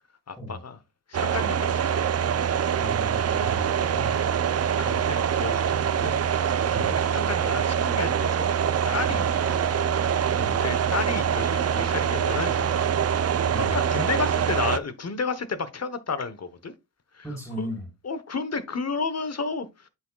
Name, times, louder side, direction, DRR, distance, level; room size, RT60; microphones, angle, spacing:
voice 1, 0.3-0.8 1.1-2.0 3.6-4.1 4.8-6.1 6.7-8.5 8.8-9.8 10.5-12.9 13.5-16.7 17.1-17.2 17.6-17.7 18.0-19.9, left 4 dB, 40° left, 1.1 m, -32 dB
sound 1, 1.1-14.8, right 8 dB, 40° right, 0.5 m, -24 dB
voice 2, 2.8-4.3 6.7-7.0 9.1-9.2 10.3-10.6 13.5-13.8 17.2-17.9, right 1 dB, 5° left, 4.2 m, -36 dB
8.0 x 7.2 x 2.4 m
cardioid pair, 80°, 41 cm